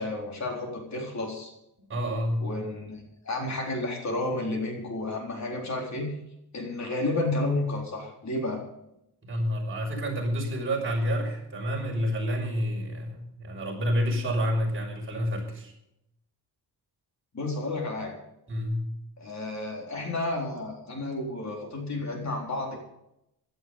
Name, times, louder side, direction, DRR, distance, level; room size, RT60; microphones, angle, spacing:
voice 1, 0.0-1.5 2.4-6.1 6.5-8.6 17.3-18.2 19.2-22.8, left 2 dB, 40° left, 1 dB, 4.1 m, -31 dB
voice 2, 1.9-2.5 9.3-15.7 18.5-18.9, equal, 30° right, 0 dB, 5.9 m, -29 dB
16.5 x 12.5 x 5.5 m, 0.82 s
wide cardioid pair, 145°, 40 cm